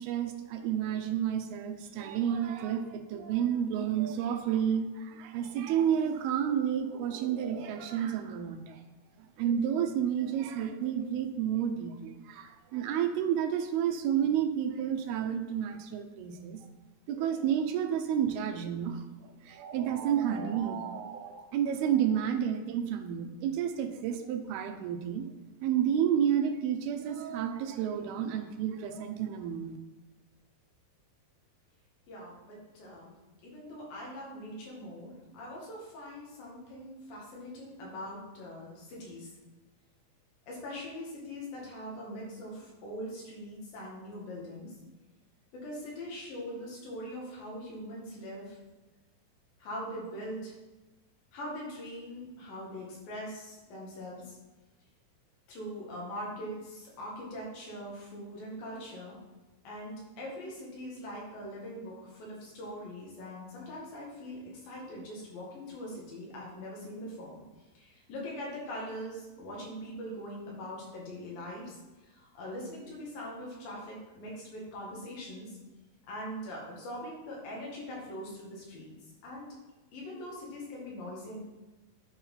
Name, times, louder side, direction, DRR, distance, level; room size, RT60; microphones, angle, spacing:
voice 1, 0.0-8.8 9.4-16.6 17.1-19.0 19.5-25.3 25.6-29.8, right 9 dB, 80° right, 7 dB, 2.6 m, -30 dB
voice 2, 32.1-33.1 33.4-39.3 40.5-44.7 45.5-48.6 49.6-50.5 51.3-54.3 55.5-59.2 59.7-67.4 67.8-71.8 72.1-75.5 76.1-78.9 79.2-79.5 79.9-81.5, equal, 65° left, -3 dB, 3.7 m, -42 dB
10.0 x 4.4 x 5.6 m, 1.1 s
omnidirectional pair, 4.5 m